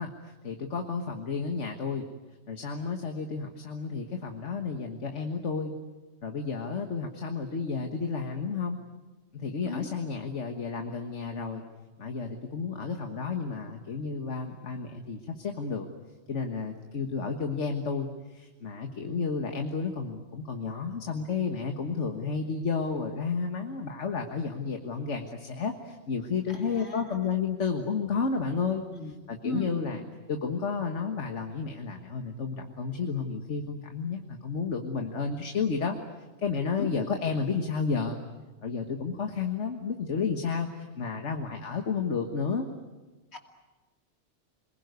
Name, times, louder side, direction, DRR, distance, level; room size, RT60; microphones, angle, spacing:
voice 1, 0.0-2.0 2.5-5.7 6.2-8.8 9.3-11.6 12.0-15.9 16.3-28.8 29.3-30.0 30.3-36.0 36.4-38.2 38.6-42.7, left 5 dB, 90° left, 4 dB, 1.9 m, -31 dB
voice 2, 26.5-27.3 28.9-29.1 29.4-29.9 36.8-36.9 43.3-43.4, left 2 dB, 65° left, 3 dB, 2.8 m, -36 dB
28.0 x 21.0 x 9.5 m, 1.2 s
omnidirectional pair, 1.2 m